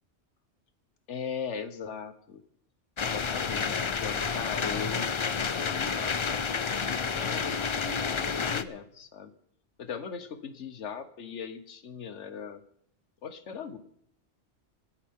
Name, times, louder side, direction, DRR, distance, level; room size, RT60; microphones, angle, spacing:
voice 1, 1.1-2.4 3.0-6.5 7.0-9.3 9.8-12.6 13.2-13.8, left 6 dB, 75° left, 11 dB, 1.4 m, -39 dB
sound 1, 3.0-8.6, left 5 dB, 40° left, 0.4 m, -30 dB
26.5 x 10.0 x 3.7 m, 0.70 s
omnidirectional pair, 1.2 m